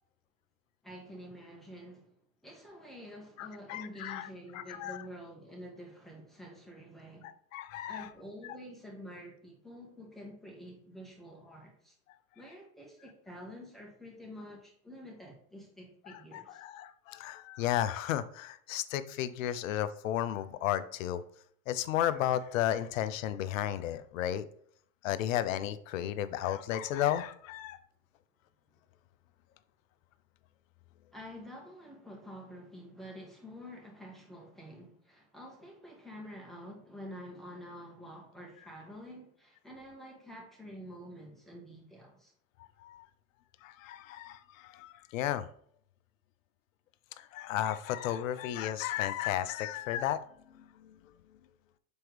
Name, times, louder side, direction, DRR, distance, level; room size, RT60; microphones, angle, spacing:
voice 1, 0.8-2.2 2.4-7.3 7.9-11.9 12.4-16.6 31.1-42.3, equal, ahead, 2.1 m, -48 dB
voice 2, 3.4-5.0 7.2-8.1 8.4-8.6 16.1-21.2 21.7-24.5 25.0-27.8 42.6-43.1 43.6-45.5 47.2-50.2 50.5-51.1, left 11 dB, 70° left, 0.6 m, -34 dB
6.8 x 4.4 x 3.3 m
hypercardioid pair, 90°, 41 cm